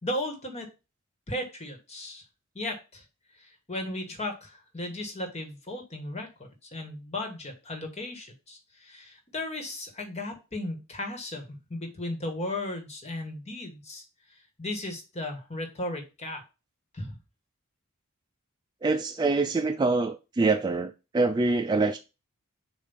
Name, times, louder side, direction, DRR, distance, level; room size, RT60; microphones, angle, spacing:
voice 1, 0.0-0.7 1.3-2.2 2.5-3.0 3.3-6.3 6.7-14.0 14.3-16.4 16.9-17.2, left 1 dB, 30° left, 1.4 m, -36 dB
voice 2, 18.8-22.0, right 3 dB, 20° right, 0.3 m, -25 dB
7.0 x 2.5 x 5.6 m
head